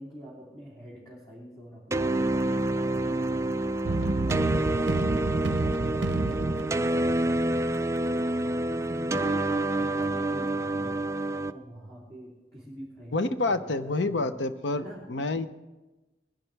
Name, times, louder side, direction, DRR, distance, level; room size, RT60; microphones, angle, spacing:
voice 1, 0.0-3.6 8.1-14.3 14.7-15.0, equal, 20° left, -7 dB, 2.9 m, -45 dB
sound 1, 1.9-11.5, right 1 dB, 15° right, 0.3 m, -27 dB
sound 2, 3.8-7.9, right 3 dB, 70° right, 0.6 m, -30 dB
voice 2, 13.1-15.5, left 2 dB, 85° left, 10 dB, 0.7 m, -28 dB
20.5 x 11.0 x 3.4 m, 1.1 s
head